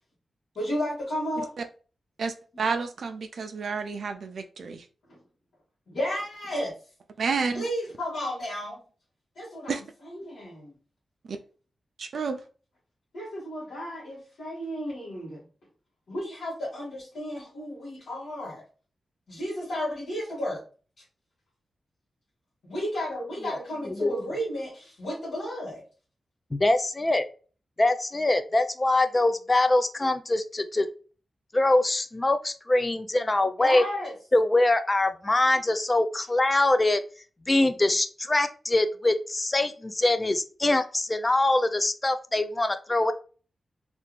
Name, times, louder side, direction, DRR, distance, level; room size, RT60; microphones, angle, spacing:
voice 1, 0.5-1.5 5.1-5.2 5.9-6.7 7.5-8.8 9.3-10.7 13.1-15.4 16.1-18.6 19.3-20.6 22.6-25.8 33.6-34.1, equal, 70° left, -8 dB, 1.6 m, -33 dB
voice 2, 2.2-4.9 7.2-7.6 9.7-9.8 11.3-11.4 12.0-12.4, right 5 dB, 65° right, 6 dB, 0.4 m, -30 dB
voice 3, 26.5-27.2 27.8-30.9 31.5-33.8 34.3-37.0 37.5-43.1, left 2 dB, 20° left, 9 dB, 0.3 m, -23 dB
3.3 x 2.5 x 3.1 m, 0.37 s
wide cardioid pair, 175°, 0 cm